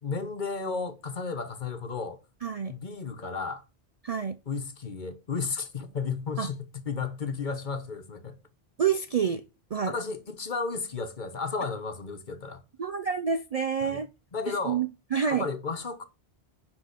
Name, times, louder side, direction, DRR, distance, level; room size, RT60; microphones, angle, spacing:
voice 1, 0.0-2.2 2.7-3.6 4.5-8.3 9.9-12.6 13.8-14.0 14.3-14.8 15.3-16.0, left 4 dB, 50° left, 1.2 m, -33 dB
voice 2, 2.4-2.8 4.0-4.4 6.4-6.5 8.8-9.5 9.7-10.0 12.8-14.1 14.5-15.5, right 7 dB, 50° right, 0.4 m, -28 dB
10.0 x 3.6 x 6.6 m
omnidirectional pair, 1.1 m